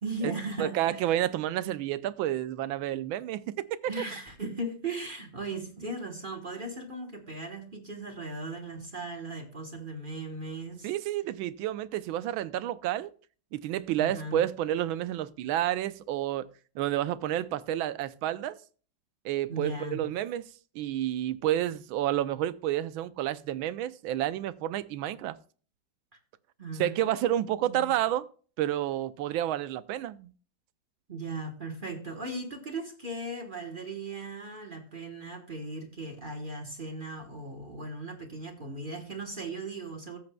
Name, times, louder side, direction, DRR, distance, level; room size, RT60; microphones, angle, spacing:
voice 1, 0.0-1.1 3.9-10.9 14.0-14.4 19.5-20.0 26.6-27.3 27.6-28.1 31.1-40.2, right 2 dB, 30° right, 1.1 m, -38 dB
voice 2, 0.6-4.0 10.8-13.1 13.5-16.5 16.7-18.5 19.2-20.4 20.7-25.4 26.8-28.2 28.6-30.3, right 12 dB, 80° right, 1.4 m, -30 dB
14.0 x 8.5 x 2.2 m
omnidirectional pair, 2.2 m